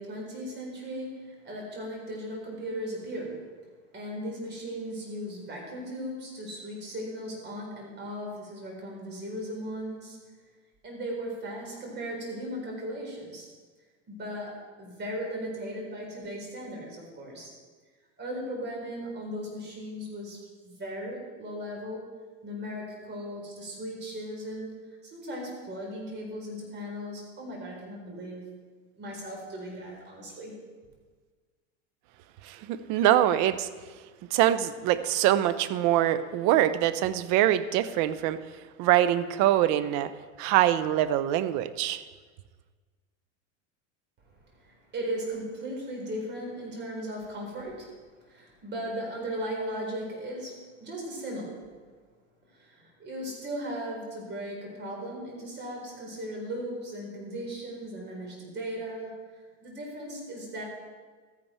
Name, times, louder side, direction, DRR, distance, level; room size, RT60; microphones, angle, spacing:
voice 1, 0.0-3.5 3.9-10.2 10.8-13.5 14.1-17.5 18.2-22.2 22.4-28.4 29.0-30.5 44.5-48.0 48.2-51.7 52.5-59.2 59.6-60.6, equal, 30° right, -1 dB, 4.1 m, -37 dB
voice 2, 32.4-33.7 34.3-38.4 38.8-40.1 40.4-42.0, right 12 dB, 55° right, 14 dB, 0.8 m, -24 dB
13.5 x 10.0 x 4.4 m, 1.5 s
supercardioid pair, 125°, 36 cm